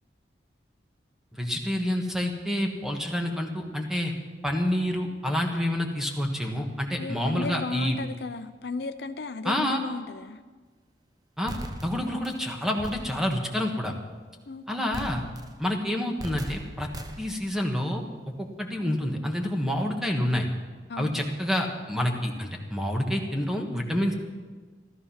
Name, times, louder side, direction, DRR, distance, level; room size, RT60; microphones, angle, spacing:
voice 1, 1.3-4.1 4.4-8.0 9.4-9.8 11.4-11.5 11.8-13.9 14.7-15.2 15.6-16.9 17.2-18.0 18.4-20.5 21.0-24.1, left 1 dB, ahead, 2 dB, 1.4 m, -28 dB
voice 2, 7.0-10.4 14.5-15.1 20.9-21.3, left 3 dB, 60° left, 10 dB, 0.6 m, -35 dB
sound 1, 11.5-12.4 12.8-13.4 14.9-15.7 16.2-17.5, right 1 dB, 20° right, 0.8 m, -39 dB
14.5 x 13.5 x 5.7 m, 1.4 s
head